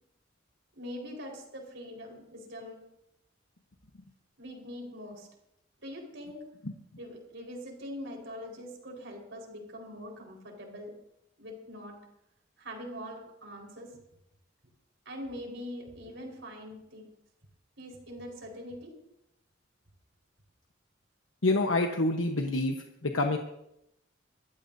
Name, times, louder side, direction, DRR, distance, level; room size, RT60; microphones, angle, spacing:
voice 1, 0.8-2.9 4.4-5.3 5.8-6.4 7.0-10.9 11.4-12.0 12.6-13.9 15.0-17.1 17.8-19.0, equal, 70° right, 0 dB, 4.5 m, -43 dB
voice 2, 21.4-22.8 23.0-23.4, left 2 dB, 90° left, 3 dB, 1.1 m, -26 dB
24.0 x 14.5 x 2.7 m, 0.81 s
head